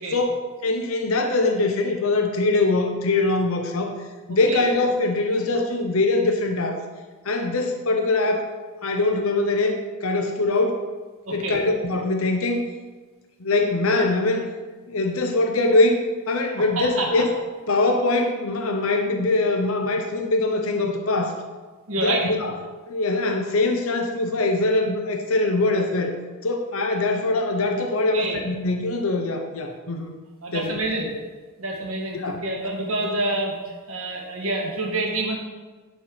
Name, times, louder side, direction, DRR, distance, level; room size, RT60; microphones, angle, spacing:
voice 1, 0.1-3.9 4.3-6.8 7.2-8.5 8.8-10.8 11.3-12.7 13.4-14.5 14.9-17.3 17.7-21.4 22.0-22.6 22.9-26.1 26.4-30.1 30.5-30.8 32.1-32.4, left 2 dB, 75° left, 4 dB, 0.8 m, -22 dB
voice 2, 11.3-11.6 16.8-17.1 21.9-22.2 28.1-28.4 30.4-31.1 31.6-33.5 33.9-35.4, right 2 dB, 75° right, 0 dB, 1.7 m, -27 dB
11.0 x 4.5 x 4.8 m, 1.3 s
head